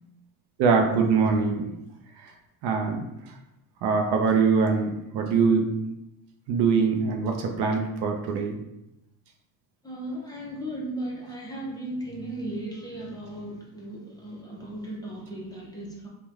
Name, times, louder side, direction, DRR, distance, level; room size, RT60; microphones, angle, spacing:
voice 1, 0.6-1.7 2.2-2.3 2.6-3.3 3.8-5.7 6.5-8.6, right 5 dB, 65° right, 3 dB, 0.6 m, -23 dB
voice 2, 9.8-16.1, right 1 dB, 10° left, -4 dB, 0.5 m, -36 dB
3.0 x 2.2 x 2.4 m, 0.90 s
supercardioid pair, 100°, 42 cm